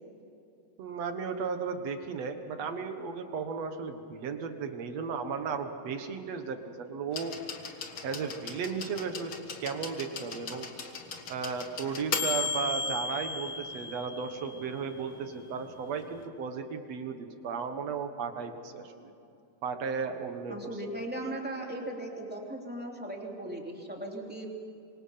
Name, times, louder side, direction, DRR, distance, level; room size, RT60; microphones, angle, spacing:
voice 1, 0.8-7.4 8.0-9.3 9.6-10.7 11.3-19.1 19.6-20.6, right 5 dB, 55° right, 7 dB, 2.3 m, -35 dB
sound 1, 7.1-14.9 16.0-16.1, left 4 dB, 45° left, 2.2 m, -36 dB
voice 2, 20.5-24.5, right 1 dB, 5° right, -1 dB, 2.7 m, -38 dB
26.5 x 24.5 x 5.8 m, 2.8 s
omnidirectional pair, 3.8 m